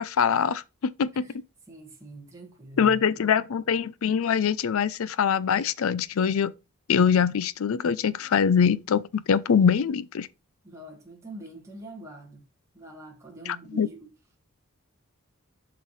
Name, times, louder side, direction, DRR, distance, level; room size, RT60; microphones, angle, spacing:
voice 1, 0.0-1.3 2.8-6.5 6.9-10.3 13.5-13.9, left 7 dB, 70° left, 0.4 m, -23 dB
voice 2, 1.7-3.2 10.6-12.4 12.7-14.0, right 1 dB, 15° right, 1.8 m, -44 dB
7.2 x 5.9 x 3.1 m
head